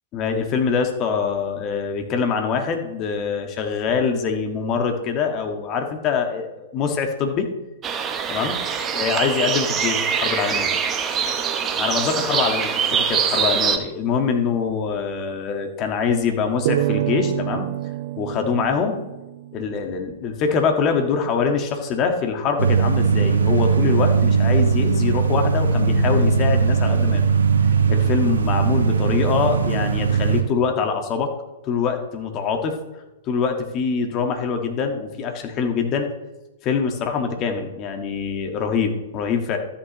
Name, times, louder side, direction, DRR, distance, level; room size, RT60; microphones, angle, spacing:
voice 1, 0.1-7.5 8.3-8.6 8.9-10.7 11.8-17.7 18.2-19.0 19.5-27.2 27.9-31.3 31.6-32.8 33.3-36.1 36.6-39.6, left 6 dB, 35° left, 4 dB, 1.6 m, -24 dB
sound 1, 7.8-13.8, right 7 dB, 25° right, 0.9 m, -23 dB
sound 2, 16.7-20.0, right 14 dB, 55° right, 0.4 m, -27 dB
sound 3, 22.6-30.4, right 5 dB, 75° right, 1.0 m, -19 dB
13.0 x 8.7 x 3.1 m, 1.0 s
figure-of-eight pair, 110°, 0 cm